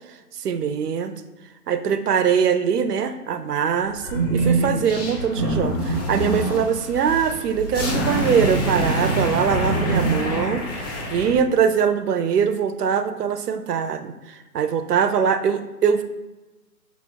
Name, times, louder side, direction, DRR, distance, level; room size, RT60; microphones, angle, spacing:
voice 1, 0.4-1.1 1.7-10.6 11.1-16.0, right 7 dB, 80° right, 10 dB, 0.6 m, -22 dB
sound 1, 4.0-11.4, right 2 dB, 15° left, 0.5 m, -24 dB
6.0 x 2.0 x 3.4 m, 1.1 s
figure-of-eight pair, 135°, 46 cm